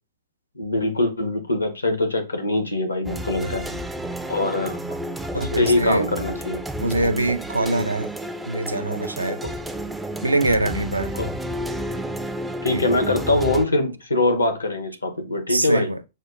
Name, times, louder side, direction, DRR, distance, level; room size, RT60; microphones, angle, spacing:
voice 1, 0.6-3.6 4.3-5.0 5.3-6.6 9.4-9.5 11.1-11.3 12.6-15.9, left 2 dB, 80° left, 0.8 m, -23 dB
sound 1, 3.1-13.7, right 1 dB, 5° right, 0.3 m, -31 dB
voice 2, 5.3-6.1 6.8-8.1 8.5-9.4 10.2-11.1 12.7-12.8 15.5-16.0, right 2 dB, 80° right, 0.4 m, -23 dB
6.2 x 2.2 x 2.4 m
figure-of-eight pair, 105°, 0 cm